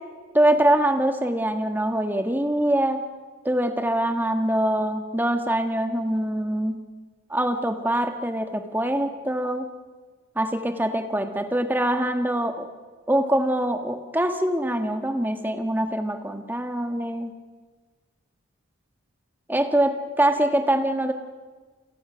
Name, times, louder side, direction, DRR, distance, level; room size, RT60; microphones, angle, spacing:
voice 1, 0.3-3.0 3.4-6.8 7.3-9.7 10.3-12.7 13.1-17.3 19.5-21.1, right 1 dB, 10° right, 6 dB, 1.5 m, -24 dB
29.5 x 23.0 x 6.2 m, 1.4 s
head